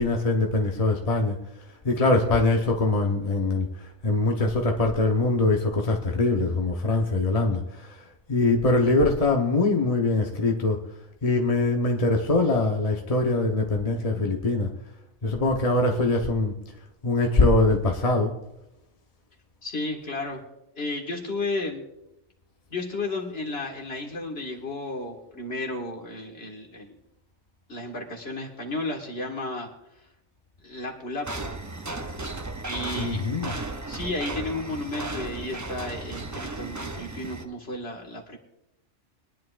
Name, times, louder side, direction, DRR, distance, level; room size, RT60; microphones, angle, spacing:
voice 1, 0.0-1.4 1.8-3.7 4.0-8.0 8.3-10.8 11.2-14.7 15.2-16.5 17.0-18.3 33.0-33.5, left 2 dB, 35° left, 2 dB, 1.0 m, -23 dB
voice 2, 19.6-20.4 20.8-21.8 22.7-27.0 27.7-29.7 30.6-31.5 32.6-33.3 33.9-38.4, left 2 dB, 55° left, 0 dB, 2.1 m, -33 dB
sound 1, 31.2-37.4, right 2 dB, 20° right, 0.5 m, -35 dB
23.0 x 10.5 x 2.5 m, 0.90 s
omnidirectional pair, 1.2 m